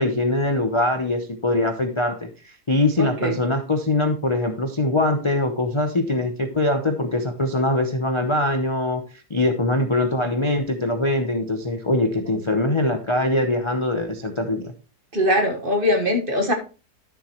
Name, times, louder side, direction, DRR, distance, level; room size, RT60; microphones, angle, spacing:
voice 1, 0.0-9.0 9.3-14.7, left 2 dB, 25° left, 5 dB, 0.7 m, -22 dB
voice 2, 3.0-3.4 15.1-16.5, left 1 dB, 35° right, 4 dB, 1.5 m, -21 dB
12.0 x 7.3 x 3.0 m, 0.33 s
omnidirectional pair, 1.7 m